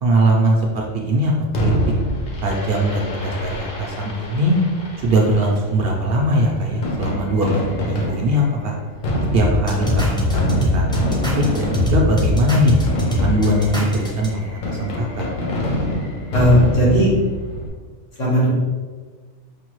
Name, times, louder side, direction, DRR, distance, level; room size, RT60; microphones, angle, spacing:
voice 1, 0.0-1.3 1.6-1.7 2.4-4.6 5.0-8.7 9.3-12.8 13.2-15.3, right 1 dB, 60° right, -1 dB, 0.7 m, -20 dB
Fireworks, 1.5-17.7, equal, 50° left, 0.8 m, -26 dB
sound 1, 9.4-14.3, left 1 dB, 5° left, 0.5 m, -21 dB
voice 2, 16.3-17.1 18.2-18.5, equal, 85° left, -6 dB, 1.8 m, -15 dB
5.1 x 2.3 x 3.0 m, 1.4 s
omnidirectional pair, 1.3 m